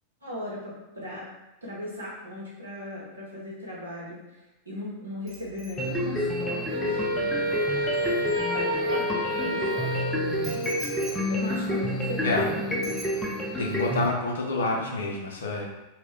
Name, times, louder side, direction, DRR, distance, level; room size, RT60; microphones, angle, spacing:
voice 1, 0.2-1.3 1.6-4.2 4.7-7.2 8.0-10.7 11.3-13.0, left 1 dB, 80° right, -5 dB, 0.8 m, -38 dB
Bicycle bell, 5.3-9.1 10.4-12.5 12.8-13.7 14.0-14.3, equal, 25° right, 1.0 m, -46 dB
sound 1, 5.8-14.1, equal, 10° left, 0.5 m, -29 dB
Wind instrument woodwind instrument, 6.7-11.1, equal, 45° right, 0.7 m, -30 dB
voice 2, 13.6-15.6, left 2 dB, 65° left, 0 dB, 0.5 m, -28 dB
2.1 x 2.1 x 3.5 m, 1.0 s
figure-of-eight pair, 90°, 0 cm